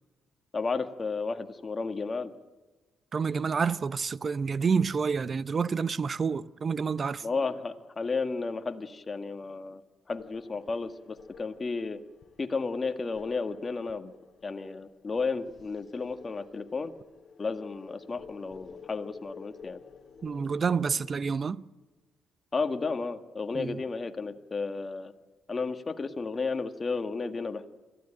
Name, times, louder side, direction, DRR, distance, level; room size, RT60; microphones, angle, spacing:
voice 1, 0.5-2.3 7.2-9.8 10.1-12.0 12.4-14.1 14.4-16.9 17.4-19.8 22.5-25.1 25.5-27.6, left 4 dB, 30° left, 1.7 m, -33 dB
voice 2, 3.1-7.3 20.2-21.6 23.5-23.8, right 5 dB, 40° right, 0.7 m, -28 dB
sound 1, 10.2-21.2, left 6 dB, 50° left, 2.2 m, -52 dB
23.5 x 15.5 x 9.0 m
cardioid pair, 90°, 0 cm